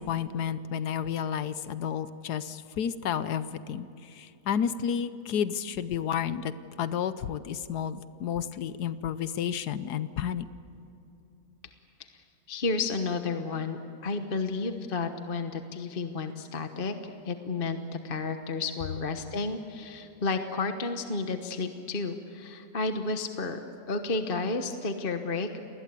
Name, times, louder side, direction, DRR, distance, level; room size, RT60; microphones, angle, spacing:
voice 1, 0.0-3.9 4.1-6.5 6.8-10.5, left 8 dB, 90° left, 13 dB, 1.4 m, -31 dB
voice 2, 12.5-17.8 18.0-23.6 23.9-25.6, left 3 dB, 40° left, 7 dB, 1.3 m, -32 dB
29.5 x 20.5 x 8.4 m, 2.8 s
omnidirectional pair, 1.7 m